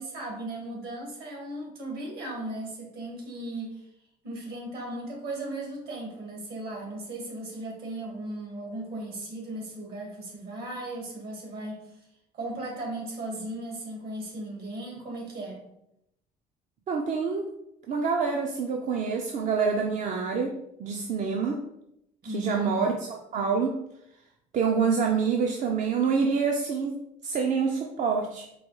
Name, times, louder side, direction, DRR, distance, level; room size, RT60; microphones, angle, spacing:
voice 1, 0.0-3.8 4.2-11.8 12.3-15.6 22.2-22.8, right 1 dB, 65° right, -1 dB, 1.5 m, -36 dB
voice 2, 16.9-17.5 17.9-20.5 20.8-21.6 22.2-23.8 24.5-28.5, right 5 dB, 45° right, 2 dB, 0.4 m, -27 dB
4.6 x 2.3 x 3.0 m, 0.80 s
cardioid pair, 110°, 17 cm